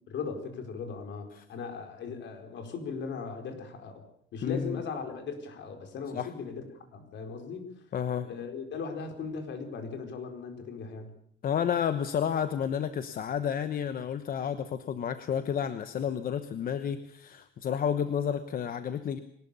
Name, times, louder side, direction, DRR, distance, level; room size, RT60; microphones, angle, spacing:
voice 1, 0.1-4.0 4.3-6.6 6.9-7.7 8.2-11.1, left 5 dB, 60° left, 5 dB, 4.8 m, -38 dB
voice 2, 4.4-4.8 6.1-6.3 7.9-8.3 11.4-19.2, left 8 dB, 45° left, 11 dB, 1.0 m, -31 dB
22.5 x 19.5 x 6.9 m, 0.69 s
cardioid pair, 175°, 21 cm